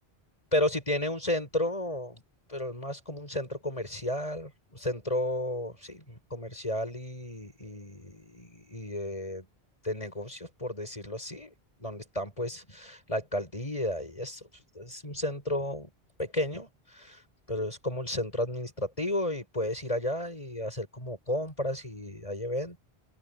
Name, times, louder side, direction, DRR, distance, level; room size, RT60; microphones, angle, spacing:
voice 1, 0.5-2.2 2.5-9.5 9.8-11.5 11.8-14.5 14.7-15.9 16.2-17.2 17.5-22.8, left 1 dB, 35° left, 7.7 m, -33 dB
open air
omnidirectional pair, 1.0 m